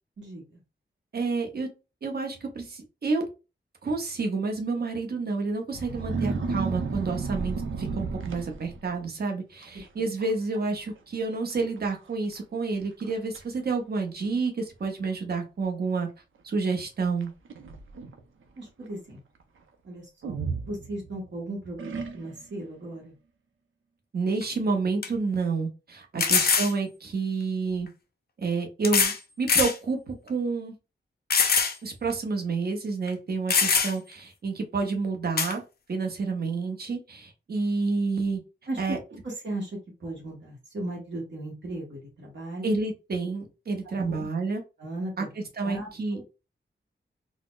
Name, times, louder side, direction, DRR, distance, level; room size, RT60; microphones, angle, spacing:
voice 1, 1.1-1.7 2.0-3.3 3.8-16.1 16.4-17.3 24.1-27.9 28.4-30.7 31.8-35.6 35.9-38.4 38.8-39.0 42.6-44.6 45.2-46.2, right 4 dB, 50° right, 2 dB, 0.7 m, -29 dB
sound 1, 5.7-9.0 9.6-9.9 10.2-10.6 10.9-11.0 11.8-11.9 12.4-12.5 13.0-13.4 14.3-14.4 17.2-18.2 20.2-21.3 21.8-22.5, right 4 dB, 85° right, 0.6 m, -33 dB
voice 2, 18.6-19.2 19.8-20.4 20.6-23.1 26.1-26.3 38.7-39.0 39.4-39.7 40.0-42.8 44.0-44.2 44.8-45.3 45.6-46.2, right 1 dB, 70° right, -3 dB, 1.1 m, -36 dB
sound 2, 24.4-24.5 25.0-25.1 26.2-26.7 27.9-28.0 28.8-29.2 29.5-29.8 30.3-30.4 31.3-31.8 32.1-32.2 33.1-33.2 33.5-34.1 35.4-35.5, left 5 dB, 50° left, 0.5 m, -23 dB
4.0 x 2.0 x 2.4 m, 0.29 s
wide cardioid pair, 150°, 20 cm